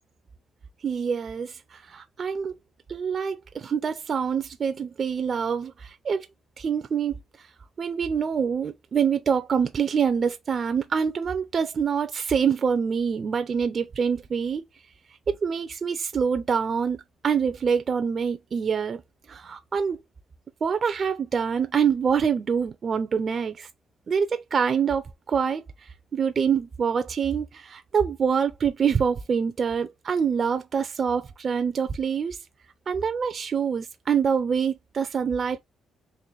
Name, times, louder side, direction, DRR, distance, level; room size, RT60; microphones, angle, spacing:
voice 1, 0.8-2.5 2.9-6.3 6.6-7.2 7.8-14.6 15.3-19.0 19.3-20.0 20.6-23.7 24.1-25.6 26.1-32.4 32.9-35.6, right 6 dB, 45° right, 0.5 m, -25 dB
3.8 x 2.5 x 3.2 m
cardioid pair, 90°, 0 cm